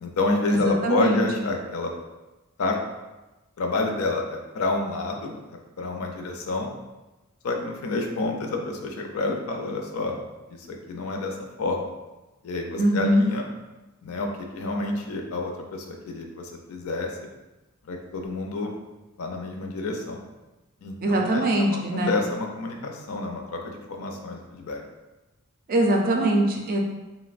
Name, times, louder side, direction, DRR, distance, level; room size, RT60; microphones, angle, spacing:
voice 1, 0.0-1.9 2.6-2.8 3.6-5.4 5.8-6.7 7.4-10.2 10.5-11.9 12.4-13.5 14.0-17.3 17.8-18.7 19.2-20.2 20.8-24.8, left 3 dB, 75° left, 2 dB, 0.5 m, -29 dB
voice 2, 0.5-1.2 12.8-13.3 21.0-22.1 25.7-26.8, right 1 dB, 45° right, 1 dB, 0.4 m, -22 dB
3.8 x 2.0 x 2.4 m, 1.1 s
head